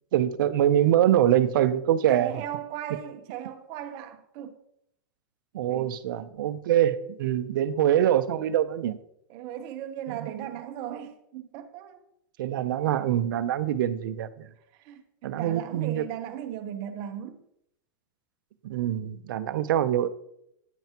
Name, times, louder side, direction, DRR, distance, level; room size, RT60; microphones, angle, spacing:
voice 1, 0.1-2.3 5.5-9.0 12.4-14.5 15.2-16.0 18.6-20.1, right 11 dB, 65° right, 0.7 m, -24 dB
voice 2, 2.1-4.6 5.7-5.9 9.3-12.0 14.7-17.4, right 10 dB, 35° right, 0.9 m, -37 dB
9.2 x 9.1 x 2.9 m
supercardioid pair, 160°, 12 cm